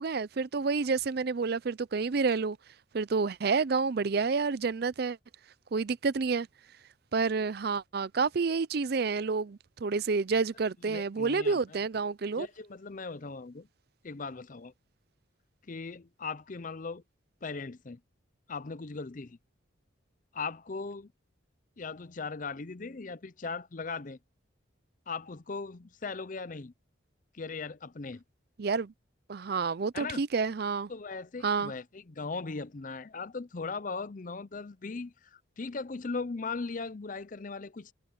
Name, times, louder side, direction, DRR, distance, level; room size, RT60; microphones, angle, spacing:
voice 1, 0.0-2.6 2.9-5.2 5.7-6.5 7.1-12.5 28.6-28.9 29.3-30.9 31.4-31.7, right 4 dB, 50° right, 0.5 m, -29 dB
voice 2, 10.8-11.6 12.4-13.7 14.0-14.7 15.7-17.0 17.4-18.0 18.5-19.4 20.3-21.1 21.8-24.2 25.1-26.7 27.3-28.2 29.9-30.2 30.9-37.9, left 4 dB, 40° left, 0.6 m, -38 dB
head